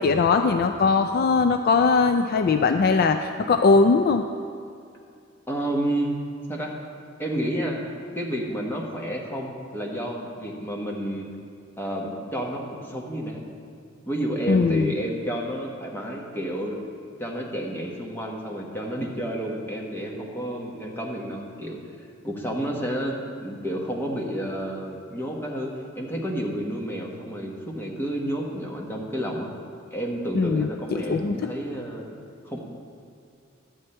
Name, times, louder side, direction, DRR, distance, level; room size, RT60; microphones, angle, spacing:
voice 1, 0.0-4.2 14.5-14.9 30.3-31.4, left 4 dB, 50° left, 7 dB, 0.4 m, -20 dB
voice 2, 5.5-6.2 6.5-6.7 7.2-7.9 8.1-11.3 11.8-13.4 14.1-16.8 17.2-21.8 22.2-29.5 29.9-32.2 32.4-32.7, right 1 dB, 10° left, -1 dB, 1.2 m, -30 dB
12.0 x 8.0 x 4.3 m, 2.3 s
head